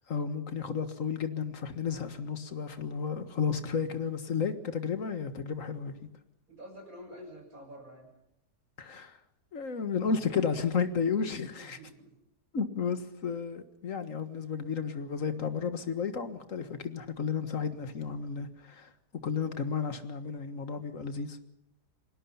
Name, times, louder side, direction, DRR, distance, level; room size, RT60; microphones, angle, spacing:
voice 1, 0.0-6.1 8.8-9.2 9.5-11.8 12.5-18.9 19.2-21.4, left 6 dB, 50° left, 9 dB, 1.9 m, -32 dB
voice 2, 6.5-8.1 11.5-12.1, equal, 50° right, 3 dB, 7.3 m, -48 dB
29.0 x 20.5 x 5.7 m, 0.82 s
omnidirectional pair, 1.8 m